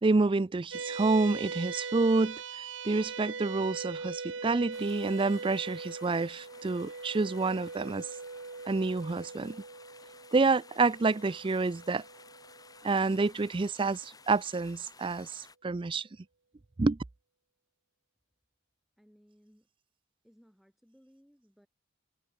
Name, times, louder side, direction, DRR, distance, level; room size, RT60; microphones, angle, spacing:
voice 1, 0.0-8.1 8.7-9.6 10.3-12.0 12.8-16.1 16.8-17.0, right 3 dB, 25° right, 0.4 m, -28 dB
sound 1, 0.7-13.4, right 4 dB, 70° right, 1.2 m, -41 dB
sound 2, 4.7-15.6, left 4 dB, 20° left, 1.6 m, -55 dB
voice 2, 19.0-19.7 20.2-21.7, equal, ahead, 5.6 m, -62 dB
head